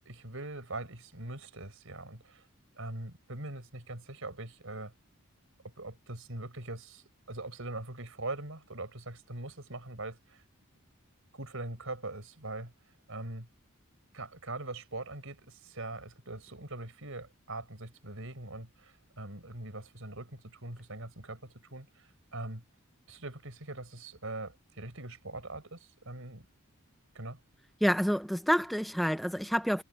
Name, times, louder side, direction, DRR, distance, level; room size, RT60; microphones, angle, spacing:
voice 1, 0.0-2.5 2.7-4.9 5.8-10.4 11.3-12.7 13.1-13.5 14.1-22.6 23.1-26.5 27.1-27.4, right 2 dB, 70° right, 4.6 m, -42 dB
voice 2, 27.8-29.8, equal, ahead, 0.4 m, -28 dB
head